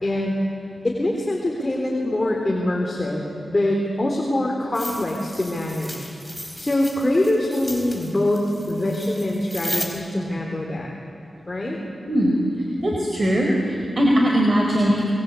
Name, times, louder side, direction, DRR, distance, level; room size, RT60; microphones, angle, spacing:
voice 1, 0.0-0.4 0.8-6.1 6.6-10.9 11.5-11.8, left 1 dB, 30° left, -2 dB, 3.9 m, -24 dB
sound 1, 4.7-9.9, equal, 5° right, 4.9 m, -35 dB
voice 2, 12.8-15.0, equal, 40° right, -1 dB, 4.5 m, -20 dB
26.5 x 22.5 x 8.6 m, 2.6 s
cardioid pair, 65°, 0 cm